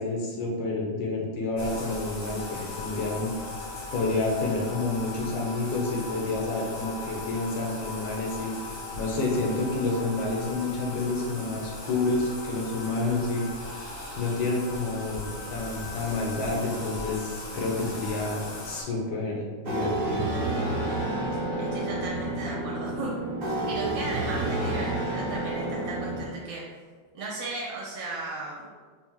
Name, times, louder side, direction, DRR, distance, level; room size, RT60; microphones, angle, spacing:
voice 1, 0.0-3.3 3.9-8.5 9.0-13.5 14.2-20.3, left 3 dB, 80° left, -2 dB, 1.5 m, -29 dB
Bathtub (filling or washing), 1.6-18.8, left 2 dB, 60° left, 0.7 m, -38 dB
voice 2, 17.6-18.0 20.9-21.3 21.6-23.1 23.7-26.6 27.1-28.7, right 2 dB, 75° right, -4 dB, 1.2 m, -36 dB
sound 1, 19.6-26.2, right 2 dB, 55° right, 1.1 m, -29 dB
4.3 x 2.0 x 3.5 m, 1.5 s
omnidirectional pair, 2.1 m